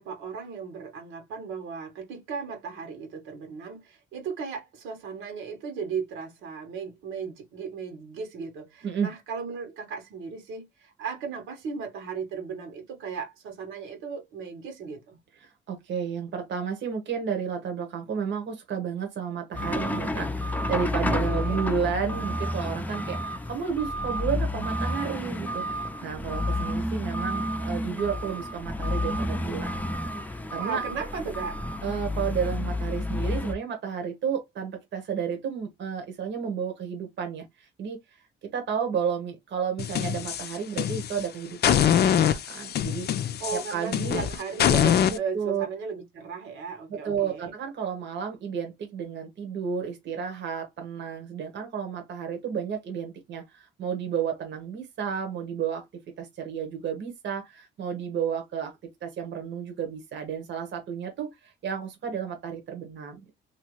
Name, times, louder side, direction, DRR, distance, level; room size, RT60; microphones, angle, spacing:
voice 1, 0.0-15.2 21.1-21.6 30.6-31.6 43.4-47.5, right 5 dB, 90° right, 1.3 m, -36 dB
voice 2, 15.4-29.8 30.2-30.8 31.8-38.0 38.5-44.3 45.1-45.6 46.9-55.9 56.2-63.3, right 7 dB, 65° right, 1.1 m, -32 dB
sound 1, 19.5-33.5, left 1 dB, 10° left, 0.5 m, -30 dB
sound 2, 39.8-41.2 41.6-45.2, left 9 dB, 55° left, 0.5 m, -24 dB
3.0 x 2.7 x 3.0 m
cardioid pair, 90°, 20 cm